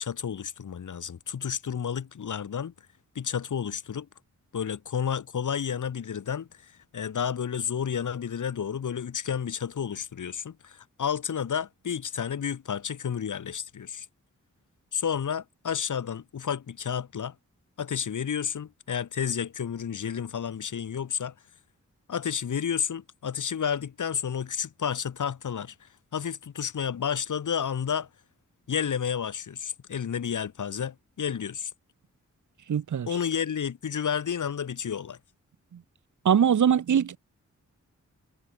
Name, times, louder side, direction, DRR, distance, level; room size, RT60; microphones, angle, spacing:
voice 1, 0.0-2.7 3.1-4.1 4.5-14.1 14.9-17.3 17.8-21.3 22.1-28.1 28.7-31.7 33.1-35.2, left 7 dB, 85° left, 3.3 m, -31 dB
voice 2, 32.7-33.1 35.7-35.8 36.2-37.2, right 8 dB, 80° right, 1.6 m, -22 dB
wide cardioid pair, 130°, 30 cm